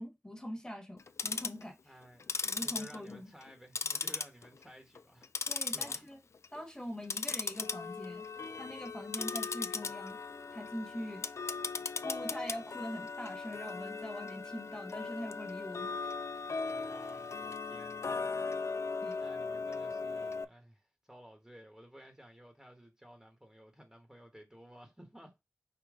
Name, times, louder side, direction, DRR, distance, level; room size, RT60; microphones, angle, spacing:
voice 1, 0.0-2.0 2.4-3.3 5.5-6.2 6.5-8.3 8.6-10.2 10.5-11.3 12.0-15.9 19.0-19.2, equal, 15° left, 1.2 m, -43 dB
Tick-tock, 1.0-1.6 2.2-3.5 3.8-4.6 5.0-6.0 6.3-6.6 7.0-20.4, left 4 dB, 70° left, 0.3 m, -38 dB
voice 2, 1.8-5.3 5.7-6.1 16.6-18.2 18.5-18.9 19.2-25.3, equal, 10° right, 1.0 m, -55 dB
4.9 x 2.9 x 3.6 m
wide cardioid pair, 75°, 5 cm